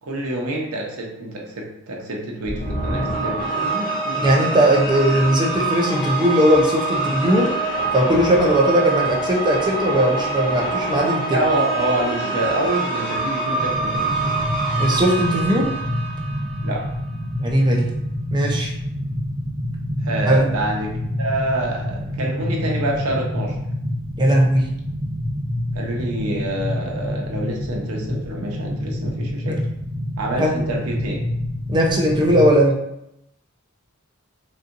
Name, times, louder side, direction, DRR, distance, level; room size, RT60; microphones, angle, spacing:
voice 1, 0.0-4.5 11.3-14.5 16.6-16.9 20.0-23.6 25.7-29.6 30.2-31.2, right 1 dB, 85° right, 0 dB, 0.8 m, -27 dB
sound 1, 2.4-16.8, right 3 dB, 40° left, 0.7 m, -25 dB
voice 2, 4.1-7.5 7.9-11.4 14.8-15.7 17.4-17.9 18.3-18.7 20.2-20.5 24.2-24.7 29.5-29.6 30.4-30.6 31.7-32.8, equal, 20° right, -1 dB, 0.6 m, -18 dB
sound 2, 13.6-32.6, left 1 dB, 65° right, 1.2 m, -27 dB
4.1 x 2.6 x 2.5 m, 0.81 s
head